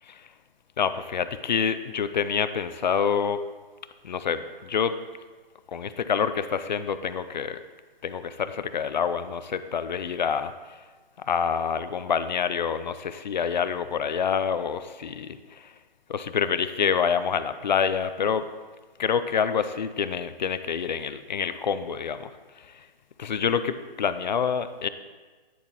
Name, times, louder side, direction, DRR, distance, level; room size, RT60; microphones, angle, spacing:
voice 1, 0.8-3.4 4.0-5.0 5.7-7.6 8.0-10.8 11.2-15.7 16.1-18.5 19.0-22.9 23.2-24.9, left 7 dB, 50° left, 12 dB, 0.4 m, -27 dB
10.0 x 7.4 x 2.9 m, 1.3 s
hypercardioid pair, 150°, 30 cm